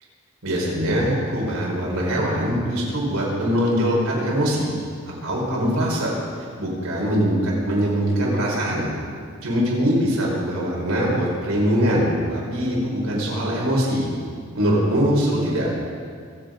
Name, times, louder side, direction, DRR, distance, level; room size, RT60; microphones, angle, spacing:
voice 1, 0.4-4.7 5.2-6.1 6.6-8.9 9.4-14.1 14.5-15.8, equal, 90° right, -4 dB, 4.9 m, -22 dB
24.5 x 8.5 x 5.3 m, 2.1 s
head